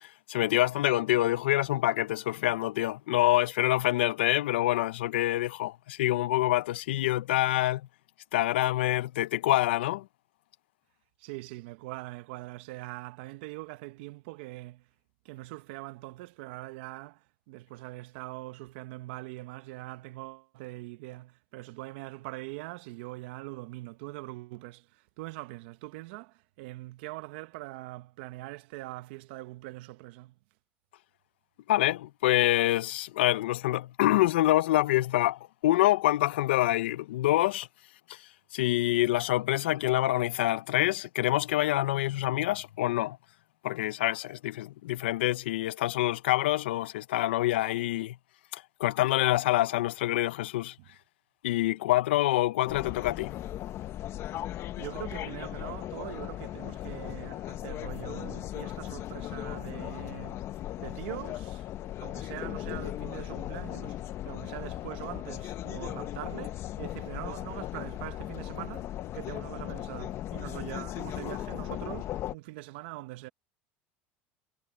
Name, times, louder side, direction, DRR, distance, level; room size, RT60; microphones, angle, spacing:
voice 1, 0.0-7.8 8.3-10.1 31.7-37.7 38.5-43.2 43.6-48.2 48.5-50.7 51.4-53.3, left 16 dB, 85° left, 0.7 m, -26 dB
voice 2, 11.2-14.9 15.2-30.3 50.8-50.9 54.8-60.4 60.8-61.7 62.0-73.3, right 20 dB, 75° right, 1.1 m, -42 dB
sound 1, 52.7-72.3, left 13 dB, 50° left, 1.4 m, -37 dB
supercardioid pair, 100°, 6 cm